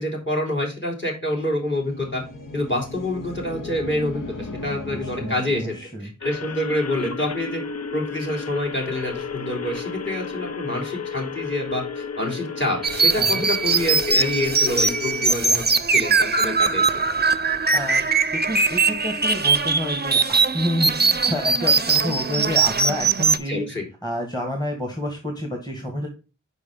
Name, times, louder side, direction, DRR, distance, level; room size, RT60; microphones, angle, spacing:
voice 1, 0.0-2.2 2.5-5.7 6.0-7.6 7.9-15.6 15.9-16.8 23.5-23.8, left 1 dB, 35° left, 2 dB, 3.1 m, -27 dB
sound 1, 1.3-5.9, left 2 dB, 80° left, 1.1 m, -36 dB
voice 2, 4.9-6.1 13.2-13.5 17.7-23.7 24.0-26.1, equal, 10° left, 3 dB, 1.8 m, -29 dB
sound 2, 6.2-15.3, left 5 dB, 55° left, 0.6 m, -32 dB
sound 3, 12.8-23.4, right 4 dB, 30° right, 0.6 m, -21 dB
6.1 x 5.1 x 3.8 m, 0.31 s
wide cardioid pair, 45°, 31 cm